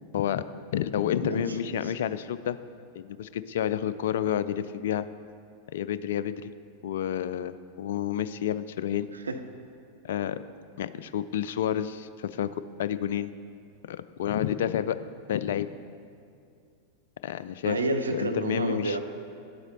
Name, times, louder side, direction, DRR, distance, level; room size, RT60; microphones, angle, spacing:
voice 1, 0.1-0.5 0.7-2.6 2.9-5.1 5.7-6.5 6.8-9.1 10.0-10.4 10.8-13.3 13.9-15.0 15.3-15.7 17.2-17.8 18.1-19.0, left 10 dB, 55° left, 14 dB, 0.3 m, -29 dB
voice 2, 1.2-1.9 9.1-9.5 17.6-19.0, right 2 dB, 75° right, 6 dB, 0.7 m, -30 dB
10.5 x 8.0 x 4.2 m, 2.4 s
figure-of-eight pair, 90°, 0 cm